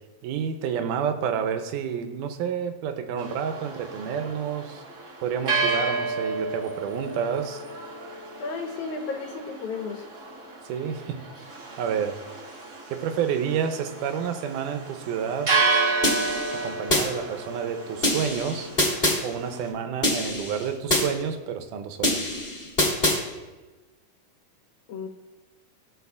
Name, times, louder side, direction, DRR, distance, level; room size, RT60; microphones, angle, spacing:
voice 1, 0.2-4.8 5.2-7.6 10.6-11.2 11.8-12.2 12.9-15.5 16.5-18.7 19.2-22.2, right 7 dB, 85° right, 7 dB, 2.2 m, -29 dB
sound 1, 3.2-19.7, right 4 dB, 65° right, 0.7 m, -31 dB
voice 2, 8.4-10.1 24.9-25.1, left 4 dB, 70° left, 3 dB, 2.3 m, -33 dB
sound 2, 16.0-17.1 18.0-19.2 20.0-21.1 22.0-23.2, left 1 dB, 20° left, 2.0 m, -24 dB
16.5 x 6.5 x 2.4 m, 1.2 s
omnidirectional pair, 3.7 m